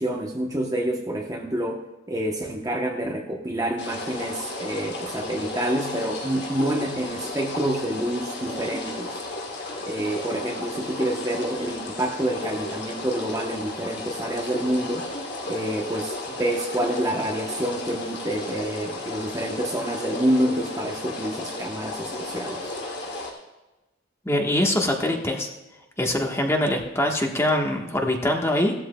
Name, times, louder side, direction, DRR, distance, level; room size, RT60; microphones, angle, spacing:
voice 1, 0.0-9.1 9.9-15.1 15.4-22.7, right 1 dB, 20° right, 1 dB, 0.8 m, -28 dB
sound 1, 3.8-23.3, left 2 dB, 60° left, 2.6 m, -34 dB
voice 2, 24.2-25.5 26.0-28.7, left 1 dB, 15° left, 1 dB, 1.2 m, -23 dB
16.5 x 13.0 x 2.2 m, 1.1 s
head